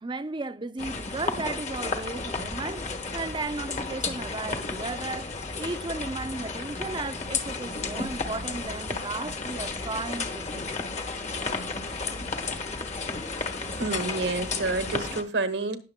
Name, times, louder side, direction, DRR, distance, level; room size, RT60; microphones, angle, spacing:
voice 1, 0.0-2.9 3.1-10.8, right 3 dB, 30° right, 0.6 m, -35 dB
sound 1, 0.8-15.2, left 4 dB, 40° left, 1.3 m, -33 dB
voice 2, 13.7-15.8, right 3 dB, 90° right, 1.3 m, -29 dB
19.0 x 6.9 x 2.2 m
head